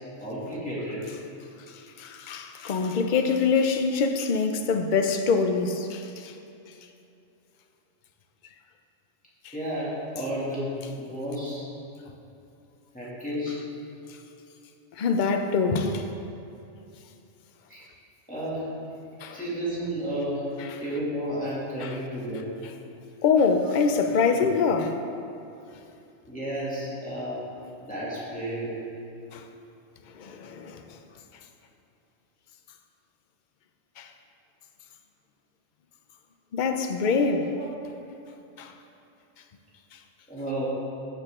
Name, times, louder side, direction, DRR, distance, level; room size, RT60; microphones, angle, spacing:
voice 1, 0.2-1.1 9.5-11.6 12.9-13.6 17.7-17.8 18.3-18.6 19.3-20.4 20.8-22.5 26.3-27.4 27.8-28.8 37.1-37.2 37.6-37.7 40.3-40.7, equal, 5° left, -9 dB, 2.4 m, -32 dB
voice 2, 2.0-6.3 9.4-9.5 15.0-16.1 19.2-19.4 20.6-20.7 21.8-21.9 23.2-25.0 29.3-29.4 30.1-30.8 34.0-34.1 36.5-37.5 38.6-38.7, left 5 dB, 45° left, 6 dB, 0.7 m, -24 dB
15.0 x 6.6 x 3.7 m, 2.7 s
omnidirectional pair, 1.3 m